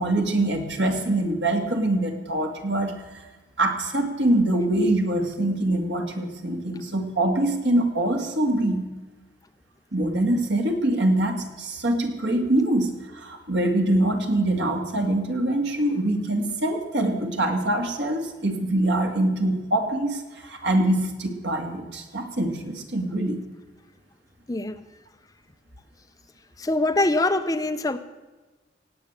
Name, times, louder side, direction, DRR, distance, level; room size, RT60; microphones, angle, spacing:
voice 1, 0.0-2.9 3.6-8.9 9.9-23.4, right 1 dB, 75° right, 4 dB, 2.3 m, -24 dB
voice 2, 24.5-24.8 26.6-28.0, left 2 dB, 20° left, 9 dB, 0.6 m, -23 dB
17.5 x 8.4 x 7.4 m, 1.2 s
head